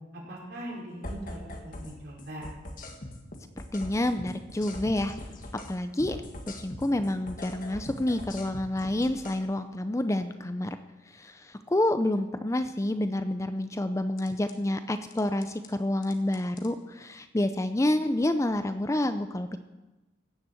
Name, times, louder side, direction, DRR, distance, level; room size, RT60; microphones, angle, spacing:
voice 1, 0.1-2.5, right 1 dB, 55° right, -3 dB, 4.8 m, -41 dB
sound 1, 1.0-1.9 2.2-5.7 6.0-9.4 14.2-14.5 15.1-15.7 16.0-16.7, left 1 dB, 45° left, 1.6 m, -41 dB
voice 2, 3.7-5.1 5.7-6.2 6.6-10.8 11.1-19.6, left 1 dB, 15° left, 10 dB, 0.5 m, -28 dB
17.0 x 7.3 x 7.7 m, 1.1 s
head